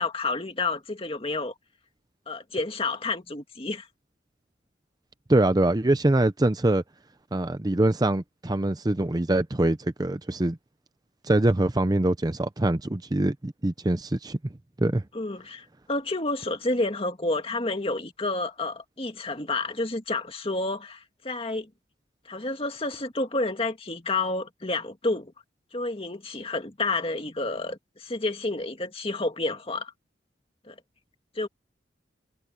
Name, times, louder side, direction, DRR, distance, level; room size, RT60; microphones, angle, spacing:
voice 1, 0.0-1.5 2.3-3.9 15.1-21.7 22.3-25.3 25.7-29.9 30.6-30.8 31.4-31.5, left 2 dB, 30° left, 2.1 m, -30 dB
voice 2, 5.3-6.8 7.3-10.6 11.2-14.4 14.8-15.0, right 1 dB, 20° right, 0.6 m, -24 dB
head